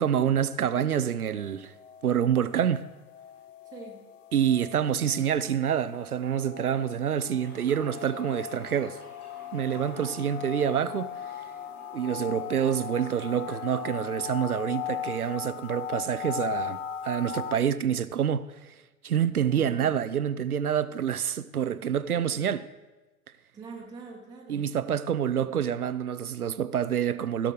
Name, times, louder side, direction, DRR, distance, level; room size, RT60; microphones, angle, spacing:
voice 1, 0.0-1.7 2.0-2.9 4.3-9.0 9.5-11.1 11.9-18.7 19.0-22.7 24.5-27.5, right 9 dB, 80° right, 0.6 m, -27 dB
sound 1, 1.4-17.6, left 10 dB, 60° left, 0.6 m, -39 dB
voice 2, 3.6-4.1 9.7-10.2 19.3-19.9 23.5-24.7, right 4 dB, 10° right, 0.9 m, -45 dB
Toilet flush, 7.4-14.3, left 1 dB, 75° left, 4.5 m, -51 dB
16.0 x 6.4 x 5.0 m
figure-of-eight pair, 110°, 44 cm